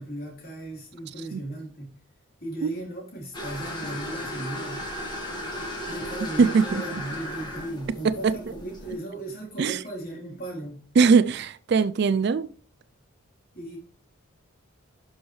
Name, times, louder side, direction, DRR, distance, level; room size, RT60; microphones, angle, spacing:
voice 1, 0.0-1.9 2.4-4.8 5.9-10.8 13.5-13.8, right 1 dB, 45° left, 3.4 m, -36 dB
sound 1, 3.3-8.9, left 1 dB, 20° left, 2.0 m, -35 dB
voice 2, 6.4-6.8 8.0-8.3 9.6-9.8 11.0-12.5, right 5 dB, 50° right, 0.3 m, -21 dB
11.5 x 6.3 x 3.2 m
head